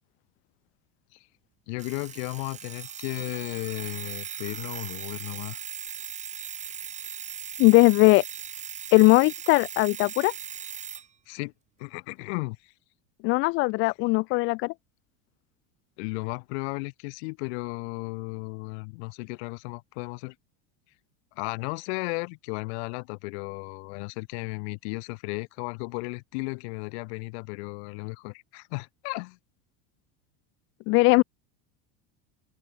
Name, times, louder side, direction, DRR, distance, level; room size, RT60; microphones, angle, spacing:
voice 1, 1.7-5.6 11.3-11.5 11.8-12.7 13.8-13.9 16.0-20.4 21.4-29.4, left 30 dB, 60° left, 3.9 m, -35 dB
Alarm, 1.8-11.1, right 7 dB, 20° right, 3.9 m, -39 dB
voice 2, 7.6-8.2 8.9-10.3 13.2-14.7 30.9-31.2, left 26 dB, 35° left, 0.5 m, -19 dB
open air
cardioid pair, 175°, 38 cm